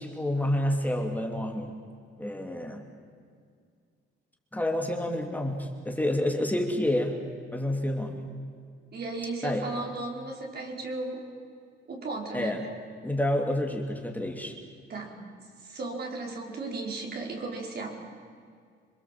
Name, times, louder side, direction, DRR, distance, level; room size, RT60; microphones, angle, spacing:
voice 1, 0.0-1.7 2.2-2.8 4.5-7.1 7.5-8.2 9.4-9.7 12.3-12.7 13.0-14.5, left 1 dB, 10° left, 2 dB, 3.0 m, -29 dB
voice 2, 8.9-11.2 11.9-12.6 14.9-15.2 15.6-18.0, right 3 dB, 55° right, 0 dB, 5.1 m, -35 dB
27.0 x 22.5 x 7.7 m, 2.2 s
cardioid pair, 90°, 20 cm